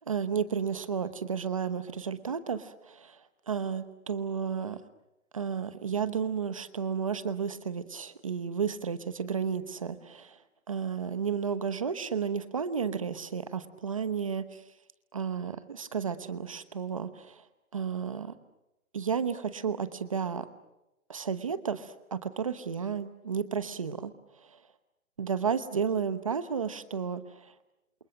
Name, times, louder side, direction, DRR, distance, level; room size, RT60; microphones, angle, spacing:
voice 1, 0.1-3.2 3.5-4.8 5.3-10.4 10.7-14.6 15.1-17.4 17.7-18.3 18.9-20.4 21.1-24.1 25.2-27.5, right 6 dB, 25° right, 13 dB, 1.0 m, -32 dB
28.5 x 28.0 x 6.5 m, 0.92 s
hypercardioid pair, 175°, 43 cm